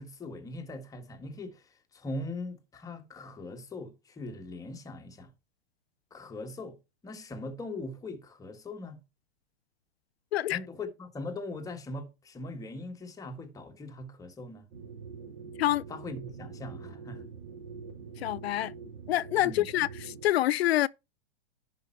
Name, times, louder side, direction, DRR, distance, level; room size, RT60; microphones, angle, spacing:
voice 1, 0.0-5.3 6.1-6.8 7.0-9.0 10.5-14.7 15.9-17.3 19.4-19.7, left 2 dB, 10° left, 1.5 m, -40 dB
sound 1, 14.7-20.3, right 5 dB, 45° right, 3.5 m, -44 dB
voice 2, 18.2-18.7 19.1-20.9, left 14 dB, 80° left, 0.5 m, -27 dB
11.0 x 5.0 x 4.4 m
hypercardioid pair, 145°, 31 cm